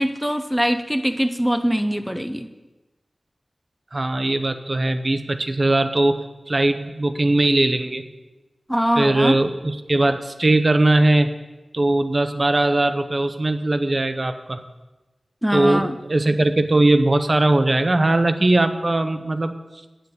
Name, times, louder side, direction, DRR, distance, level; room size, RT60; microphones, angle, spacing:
voice 1, 0.0-2.5 8.7-9.3 15.4-15.9, equal, ahead, 8 dB, 0.6 m, -22 dB
voice 2, 3.9-8.0 9.0-11.3 11.7-14.6 15.5-19.5, right 2 dB, 40° right, 9 dB, 0.7 m, -20 dB
9.0 x 6.9 x 8.2 m, 1.1 s
wide cardioid pair, 80°, 0 cm